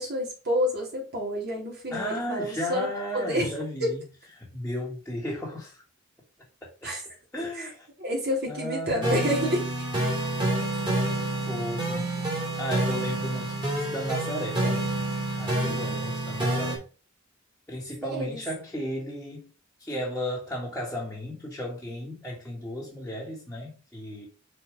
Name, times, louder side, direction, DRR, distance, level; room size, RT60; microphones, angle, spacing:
voice 1, 0.0-2.9 3.1-3.5 3.8-3.9 6.8-7.0 7.6-7.7 8.0-9.6 15.6-16.0 18.0-18.4, equal, 55° right, 3.1 m, -29 dB
voice 2, 1.9-4.0 4.4-5.8 6.8-6.9 7.3-7.9 8.5-9.4 10.9-12.1 12.6-15.0 15.4-16.8 17.7-19.5 19.8-24.3, equal, 5° left, 1.7 m, -34 dB
sound 1, 9.0-16.8, right 1 dB, 20° right, 2.6 m, -28 dB
5.6 x 4.3 x 5.1 m
head